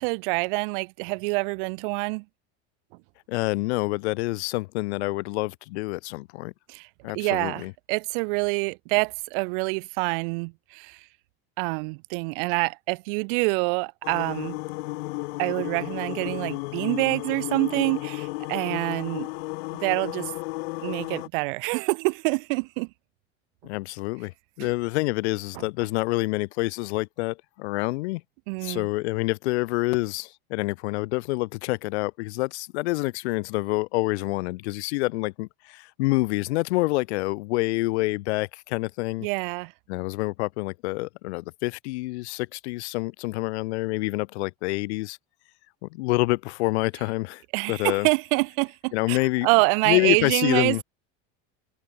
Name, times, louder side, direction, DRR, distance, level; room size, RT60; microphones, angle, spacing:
voice 1, 0.0-2.2 6.7-6.9 7.1-11.0 11.6-14.6 15.4-19.3 19.8-20.3 20.8-22.9 24.6-24.7 25.5-25.6 28.5-28.9 39.2-39.7 47.5-50.8, right 33 dB, 55° right, 0.6 m, -26 dB
voice 2, 3.3-6.5 7.0-7.7 23.6-24.3 24.6-28.2 28.6-39.3 39.9-45.2 45.8-47.4 47.7-48.1 48.9-49.5 49.8-50.8, left 22 dB, 90° left, 1.0 m, -27 dB
sound 1, 14.0-21.3, left 24 dB, 70° left, 1.2 m, -33 dB
cardioid pair, 170°, 32 cm